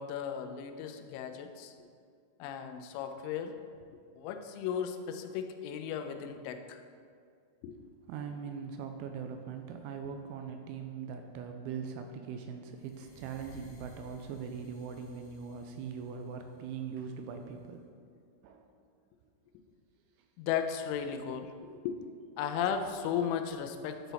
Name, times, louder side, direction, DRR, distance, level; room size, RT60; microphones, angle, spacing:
voice 1, 0.0-1.7 2.4-3.5 4.2-6.8 7.6-7.8 20.4-22.0 22.4-24.1, left 8 dB, 90° left, 7 dB, 3.1 m, -35 dB
voice 2, 8.1-17.8 18.4-18.7, right 6 dB, 85° right, 5 dB, 2.9 m, -41 dB
sound 1, 12.7-17.7, equal, 75° left, 1.9 m, -58 dB
11.5 x 4.0 x 4.0 m, 2.2 s
omnidirectional pair, 5.5 m